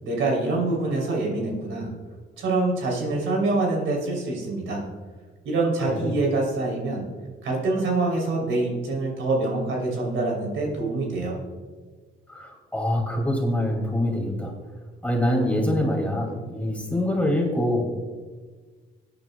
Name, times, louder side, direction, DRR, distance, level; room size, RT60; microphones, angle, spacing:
voice 1, 0.0-1.9 2.4-4.8 5.4-7.0 7.4-11.4, right 2 dB, 80° right, -1 dB, 3.3 m, -25 dB
voice 2, 12.3-14.5 15.0-17.9, left 1 dB, 5° left, 0 dB, 2.4 m, -25 dB
18.0 x 9.2 x 2.3 m, 1.4 s
cardioid pair, 90°, 20 cm